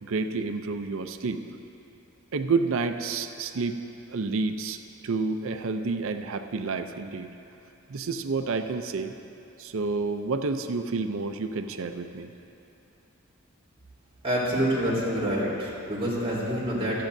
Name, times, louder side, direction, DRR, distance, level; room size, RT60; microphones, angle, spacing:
voice 1, 0.0-1.4 2.3-3.8 4.1-7.3 7.9-9.1 9.6-12.3, right 4 dB, 65° right, 8 dB, 0.5 m, -29 dB
voice 2, 14.2-17.0, equal, 30° right, -7 dB, 3.3 m, -27 dB
17.5 x 13.0 x 2.6 m, 2.8 s
head